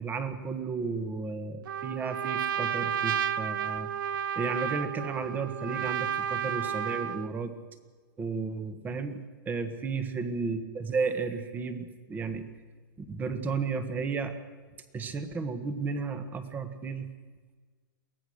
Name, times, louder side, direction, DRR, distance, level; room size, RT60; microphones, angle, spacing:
voice 1, 0.0-3.9 4.3-7.5 8.2-12.4 13.1-14.3 14.9-17.1, right 4 dB, 15° right, 10 dB, 1.5 m, -33 dB
Trumpet, 1.7-7.3, right 9 dB, 65° right, 1.0 m, -32 dB
23.0 x 17.5 x 6.5 m, 1.5 s
supercardioid pair, 155°, 12 cm